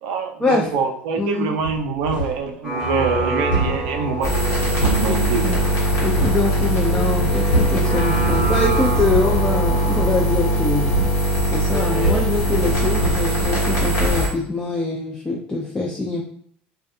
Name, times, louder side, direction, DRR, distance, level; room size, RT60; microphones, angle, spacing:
voice 1, 0.0-5.6, right 5 dB, 65° right, 4 dB, 0.4 m, -25 dB
voice 2, 1.2-1.6 5.0-5.2 5.4-5.6 6.0-10.9 11.5-16.2, left 3 dB, 15° left, -3 dB, 0.4 m, -24 dB
sound 1, 1.6-2.5 2.8-6.5 6.9-7.9 8.3-8.7 9.0-9.4 10.2-13.7 14.0-14.3, right 1 dB, 80° left, 1.1 m, -27 dB
sound 2, 2.6-12.2, right 2 dB, 5° right, 0.8 m, -28 dB
sound 3, 4.2-14.3, equal, 55° left, 1.0 m, -21 dB
2.4 x 2.2 x 2.6 m, 0.64 s
hypercardioid pair, 70°, 6 cm